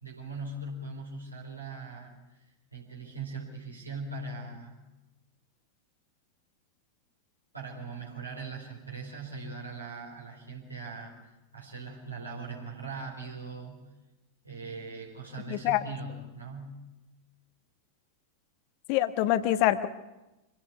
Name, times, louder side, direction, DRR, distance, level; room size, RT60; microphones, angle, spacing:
voice 1, 0.0-2.1 2.7-4.8 7.5-13.9 14.4-16.8, right 3 dB, 85° right, -2 dB, 4.4 m, -40 dB
voice 2, 15.5-15.8 18.9-19.9, left 13 dB, 45° left, 11 dB, 1.3 m, -25 dB
25.0 x 17.0 x 8.2 m, 1.0 s
figure-of-eight pair, 90°, 0 cm